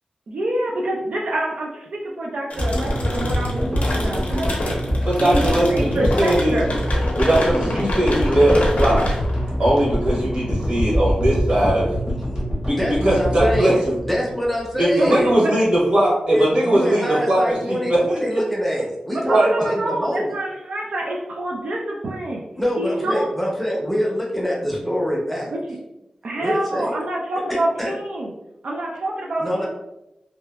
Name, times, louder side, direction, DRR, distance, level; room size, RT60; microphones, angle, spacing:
voice 1, 0.3-4.8 5.2-6.7 15.0-15.6 19.2-22.4 22.8-23.3 25.5-25.8 26.2-28.3 28.6-29.7, right 1 dB, 75° right, -3 dB, 0.4 m, -26 dB
sound 1, 2.5-11.2, left 1 dB, 80° left, 0.5 m, -29 dB
sound 2, 2.6-14.9, equal, 35° right, 0.9 m, -24 dB
voice 2, 5.0-6.6 7.2-9.1 9.6-11.9 12.6-13.7 14.8-18.0 19.3-19.5, right 1 dB, 55° right, -5 dB, 1.1 m, -19 dB
voice 3, 12.3-15.3 16.3-20.3 22.5-25.4 26.4-26.9 27.5-27.9 29.4-29.7, equal, 5° left, -4 dB, 0.6 m, -24 dB
2.7 x 2.2 x 2.2 m, 0.90 s
wide cardioid pair, 110°, 2 cm